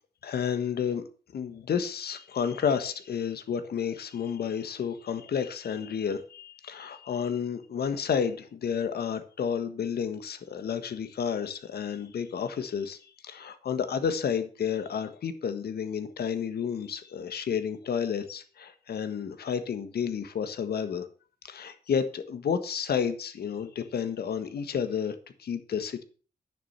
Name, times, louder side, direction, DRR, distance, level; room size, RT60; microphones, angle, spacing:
voice 1, 0.2-1.0 1.3-13.0 13.2-21.1 21.4-26.0, left 7 dB, 70° left, 10 dB, 1.5 m, -31 dB
10.0 x 7.3 x 6.8 m, 0.39 s
cardioid pair, 95°, 17 cm